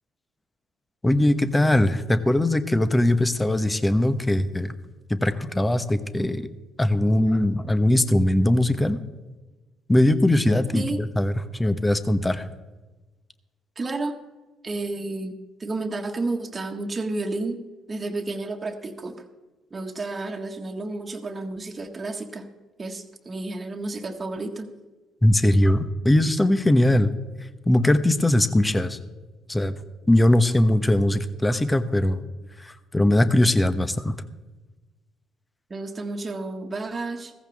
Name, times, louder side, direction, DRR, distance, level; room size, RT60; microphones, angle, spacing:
voice 1, 1.0-4.7 5.1-6.5 6.8-9.0 9.9-12.4 25.2-27.1 27.7-29.0 29.5-29.7 30.1-32.2 32.6-34.2, left 1 dB, 15° left, 12 dB, 1.2 m, -20 dB
voice 2, 13.7-14.2 14.6-17.6 17.9-19.2 19.7-22.5 22.8-24.7 35.7-37.3, right 2 dB, 35° right, 2 dB, 1.6 m, -31 dB
16.0 x 14.5 x 3.6 m, 1.2 s
hypercardioid pair, 50°, 0 cm